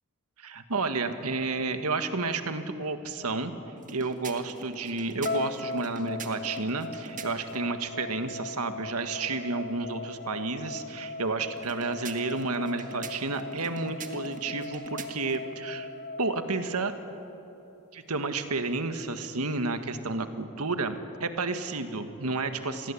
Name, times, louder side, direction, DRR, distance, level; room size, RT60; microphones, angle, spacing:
voice 1, 0.4-3.5 3.9-15.9 16.2-16.9 17.9-22.9, right 3 dB, 85° right, 8 dB, 1.7 m, -31 dB
sound 1, 3.8-7.7 11.6-15.5, right 4 dB, 35° right, 1.8 m, -44 dB
sound 2, 5.2-17.4, left 3 dB, 50° left, 1.2 m, -39 dB
28.0 x 21.5 x 8.6 m, 2.9 s
head